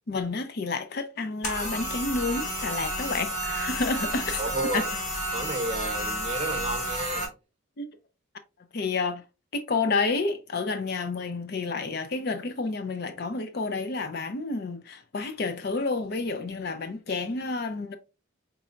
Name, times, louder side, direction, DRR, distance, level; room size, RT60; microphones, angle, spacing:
voice 1, 0.1-4.4 4.7-4.8 7.8-7.9 8.7-9.2 9.5-18.0, left 3 dB, 50° left, 0.5 m, -30 dB
sound 1, 1.4-7.2, right 1 dB, 35° left, 1.7 m, -31 dB
voice 2, 4.4-4.9 5.3-7.3, right 2 dB, 30° right, 0.8 m, -32 dB
4.3 x 4.1 x 2.4 m
head